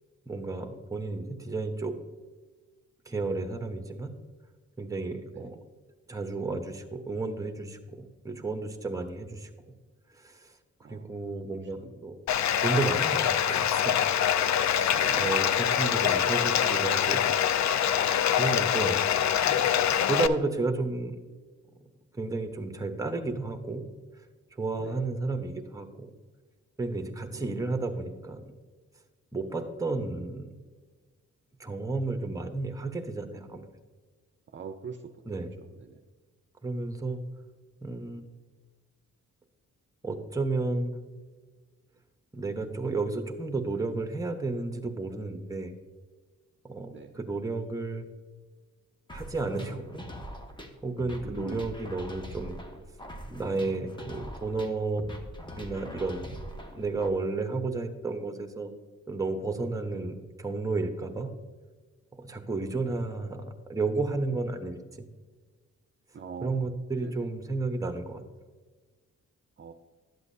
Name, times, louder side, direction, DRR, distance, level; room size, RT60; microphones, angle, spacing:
voice 1, 0.3-1.9 3.1-4.1 4.8-5.6 6.1-9.5 10.1-10.5 10.9-12.2 12.6-13.9 14.7-17.2 18.4-21.2 22.1-23.8 24.6-26.1 26.8-28.5 29.3-30.5 31.6-33.7 35.3-35.5 36.6-37.2 37.8-38.4 40.0-41.0 42.3-45.7 46.6-48.1 49.1-50.1 50.8-52.6 53.3-55.0 55.6-58.7 59.1-61.3 62.2-65.0 66.4-68.2, right 3 dB, 10° right, 6 dB, 1.0 m, -32 dB
voice 2, 11.5-12.0 14.9-15.3 24.8-25.1 27.3-27.5 34.5-35.1 35.8-36.0 46.9-47.2 51.2-51.6 66.1-66.6 67.0-67.1 69.6-69.7, right 6 dB, 40° right, 5 dB, 0.6 m, -42 dB
Bathtub (filling or washing), 12.3-20.3, left 9 dB, 65° left, 0.5 m, -25 dB
sound 1, 49.1-57.1, equal, 15° left, 1.0 m, -42 dB
11.5 x 8.1 x 2.7 m, 1.4 s
cardioid pair, 100°, 30 cm